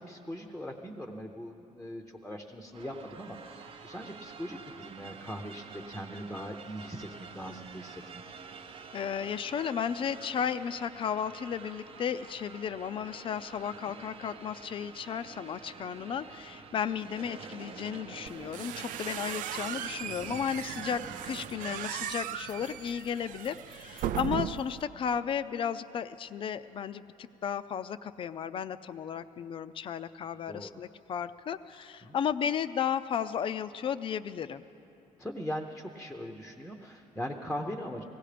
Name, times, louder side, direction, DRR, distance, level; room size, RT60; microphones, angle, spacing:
voice 1, 0.0-8.2 30.5-30.7 32.0-32.2 35.2-38.0, equal, 5° left, 3 dB, 0.7 m, -40 dB
sound 1, 2.7-21.9, right 5 dB, 40° right, 0.7 m, -47 dB
voice 2, 8.9-34.6, left 8 dB, 40° left, 13 dB, 0.4 m, -34 dB
sound 2, 18.3-24.8, right 11 dB, 75° right, 0.4 m, -37 dB
17.0 x 16.5 x 5.0 m, 3.0 s
cardioid pair, 140°, 14 cm